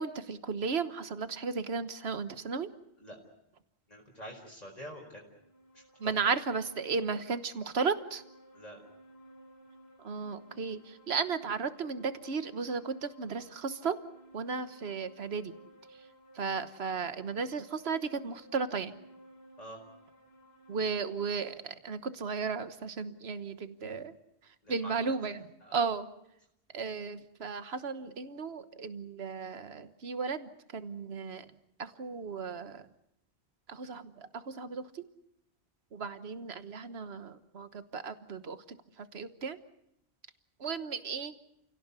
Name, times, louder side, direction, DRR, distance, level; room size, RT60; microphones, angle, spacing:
voice 1, 0.0-2.7 6.0-8.2 10.0-14.0 14.3-15.5 16.3-18.9 20.7-24.2 24.7-26.1 26.7-31.5 31.8-32.9 33.7-35.0 35.9-38.6 39.0-39.6 40.6-41.3, right 5 dB, 70° right, 11 dB, 1.5 m, -35 dB
voice 2, 3.9-5.2 5.7-6.1 8.5-8.8 19.6-19.8 24.6-25.1 25.6-25.9, equal, 40° left, -1 dB, 4.8 m, -46 dB
sound 1, 5.2-21.6, right 1 dB, 70° left, 3.7 m, -57 dB
29.0 x 17.5 x 8.2 m, 0.80 s
omnidirectional pair, 1.1 m